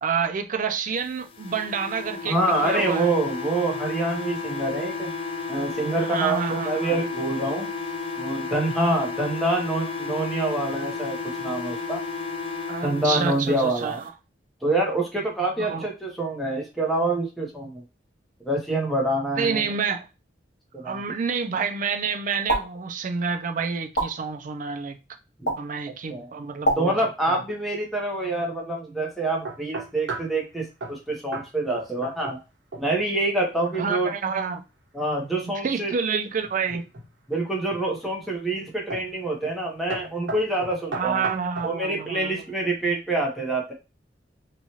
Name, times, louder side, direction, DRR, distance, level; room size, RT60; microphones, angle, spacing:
voice 1, 0.0-3.1 6.0-7.0 12.7-14.1 15.6-15.9 19.4-20.1 20.8-25.0 25.6-27.4 33.7-34.6 35.6-36.9 40.9-42.4, right 6 dB, 45° right, 0.4 m, -28 dB
sound 1, 1.3-13.4, left 4 dB, 30° left, 0.4 m, -32 dB
voice 2, 2.3-5.1 5.5-7.7 8.2-12.0 12.8-14.0 14.6-17.8 18.4-19.6 20.7-21.0 25.4-25.6 26.1-26.3 26.8-32.4 32.8-34.1 34.9-35.9 37.3-41.2 41.6-43.7, right 2 dB, ahead, 0.8 m, -26 dB
sound 2, 22.5-22.6 23.9-24.1 25.5-25.6 26.6-26.8, right 1 dB, 65° left, 1.2 m, -22 dB
sound 3, 29.4-30.4 30.8-31.0 31.3-31.5 31.7-32.4 32.7-33.1 36.4-37.1 37.7-38.1 38.9-39.1 39.4-39.6 39.9-41.7, right 3 dB, 75° right, 1.1 m, -35 dB
2.8 x 2.3 x 2.9 m
head